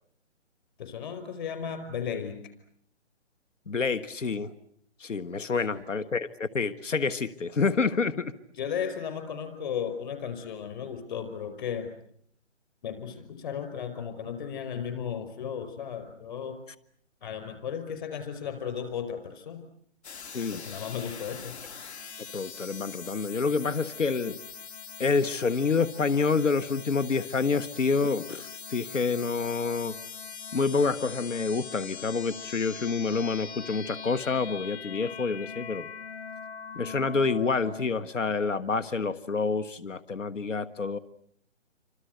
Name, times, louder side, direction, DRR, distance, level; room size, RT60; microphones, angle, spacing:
voice 1, 0.8-2.5 5.7-5.8 8.6-12.0 12.8-16.6 17.2-19.6 20.5-21.6, left 7 dB, 40° left, 9 dB, 5.3 m, -35 dB
voice 2, 3.7-4.5 5.0-8.3 20.3-20.6 22.3-24.4 25.0-29.9 30.5-35.9 36.7-41.0, left 4 dB, 85° left, 14 dB, 1.6 m, -28 dB
sound 1, 20.0-37.9, left 6 dB, 60° left, 2.5 m, -42 dB
29.0 x 25.5 x 8.0 m, 0.67 s
hypercardioid pair, 155°, 36 cm